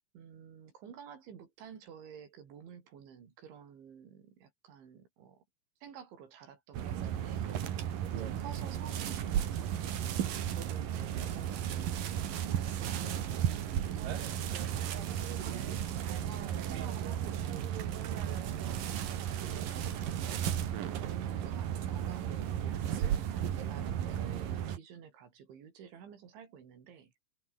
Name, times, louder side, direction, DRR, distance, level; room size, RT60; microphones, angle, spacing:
voice 1, 0.1-5.4 5.8-7.8 8.1-10.2 10.5-17.9 18.6-19.0 19.5-20.6 20.9-27.2, right 7 dB, 80° right, 6.3 m, -51 dB
sound 1, 6.7-24.8, right 10 dB, 55° right, 3.2 m, -34 dB
omnidirectional pair, 5.3 m